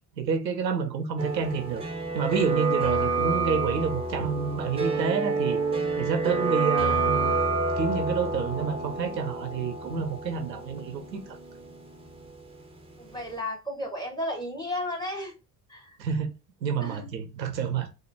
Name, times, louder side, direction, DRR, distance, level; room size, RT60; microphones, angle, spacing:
voice 1, 0.2-1.8 2.1-5.6 6.0-7.4 7.8-11.2 16.0-16.3 16.6-17.9, right 6 dB, 85° right, 0.6 m, -29 dB
sound 1, 1.2-12.9 13.2-13.3, right 3 dB, 10° right, 0.8 m, -29 dB
voice 2, 13.0-15.3 15.7-16.0 16.8-17.1, left 1 dB, 10° left, 1.7 m, -33 dB
4.1 x 2.6 x 2.7 m
figure-of-eight pair, 55°, 50 cm